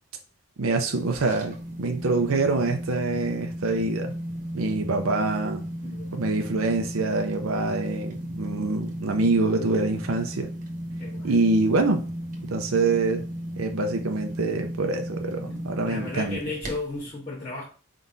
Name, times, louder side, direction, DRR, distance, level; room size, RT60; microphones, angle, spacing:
voice 1, 0.6-4.1 4.5-5.6 6.1-10.5 11.2-12.0 12.5-13.2 13.6-16.4, right 3 dB, 80° right, 0.6 m, -25 dB
sound 1, 0.8-17.1, equal, 40° right, 1.0 m, -35 dB
voice 2, 5.8-6.2 11.0-11.4 15.4-17.6, left 3 dB, 30° left, 1.3 m, -35 dB
4.7 x 3.8 x 2.7 m
head